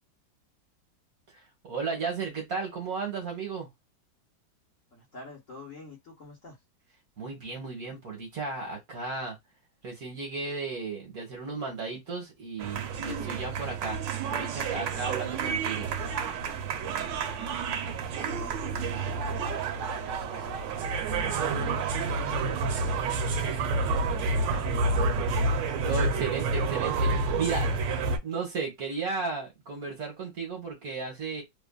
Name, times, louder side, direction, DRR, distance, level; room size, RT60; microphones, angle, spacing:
voice 1, 1.3-3.7 7.2-9.4 9.8-14.0 14.3-15.9 25.5-27.7 28.2-31.4, right 4 dB, 55° right, 1.3 m, -34 dB
voice 2, 4.9-6.6 18.0-18.6 18.9-19.4 19.7-20.8 21.3-22.9 23.6-25.0, left 2 dB, 45° left, 1.3 m, -46 dB
sound 1, 12.6-28.2, right 3 dB, 70° right, 1.2 m, -29 dB
3.4 x 2.5 x 2.2 m
omnidirectional pair, 2.2 m